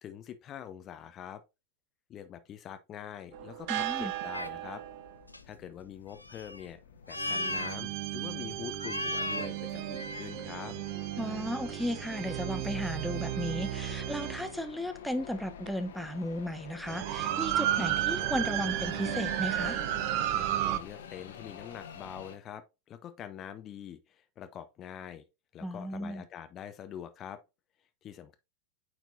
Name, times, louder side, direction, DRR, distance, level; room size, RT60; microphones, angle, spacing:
voice 1, 0.0-1.4 2.1-4.8 5.4-6.8 7.1-10.7 20.6-25.2 25.5-27.4 28.0-28.4, left 9 dB, 30° left, 0.7 m, -44 dB
sound 1, 3.3-22.4, left 7 dB, 60° left, 1.2 m, -49 dB
sound 2, 3.3-5.1 7.2-14.5 15.7-15.8 16.8-20.8, right 13 dB, 45° right, 0.6 m, -33 dB
voice 2, 3.7-4.1 11.2-19.8 25.6-26.2, equal, ahead, 0.8 m, -35 dB
sound 3, 4.3-4.5 5.3-5.6 6.2-6.7 7.0-7.8 8.8-9.5 9.8-10.3 10.8-10.9, left 2 dB, 85° left, 0.5 m, -35 dB
9.1 x 4.5 x 2.6 m
figure-of-eight pair, 90°, 0 cm